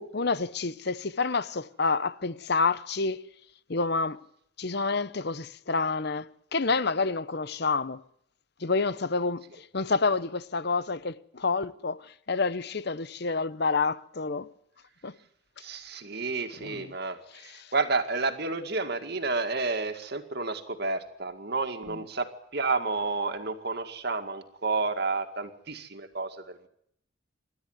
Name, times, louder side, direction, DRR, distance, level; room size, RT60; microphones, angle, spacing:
voice 1, 0.0-3.2 3.7-4.2 4.6-8.0 8.6-9.4 9.7-12.0 12.3-14.5 15.0-15.1 16.6-16.9 17.5-17.7 21.9-22.0, left 4 dB, 50° left, 0.8 m, -28 dB
voice 2, 15.6-26.7, right 3 dB, 50° right, 2.1 m, -31 dB
26.5 x 12.5 x 9.5 m
head